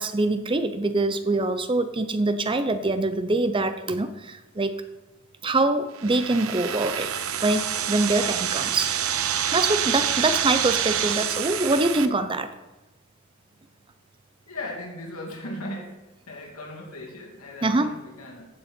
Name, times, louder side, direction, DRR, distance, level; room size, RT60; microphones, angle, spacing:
voice 1, 0.0-4.8 5.4-7.1 7.4-8.9 9.5-12.5 17.6-17.9, right 2 dB, 25° right, 10 dB, 0.6 m, -24 dB
sound 1, 5.9-12.1, right 9 dB, 65° right, 0.7 m, -27 dB
voice 2, 14.5-16.0 16.3-18.5, left 1 dB, 80° left, -1 dB, 2.7 m, -37 dB
15.0 x 6.8 x 4.4 m, 1.0 s
head